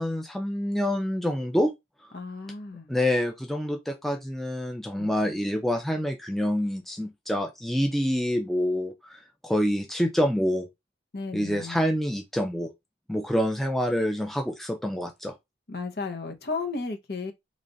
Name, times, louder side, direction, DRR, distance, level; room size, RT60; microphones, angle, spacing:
voice 1, 0.0-1.7 2.9-10.7 11.3-12.7 13.1-15.3, equal, ahead, 0.4 m, -27 dB
voice 2, 2.1-2.9 5.0-5.1 11.1-11.8 15.7-17.3, left 3 dB, 55° left, 0.8 m, -34 dB
3.1 x 2.5 x 3.8 m
head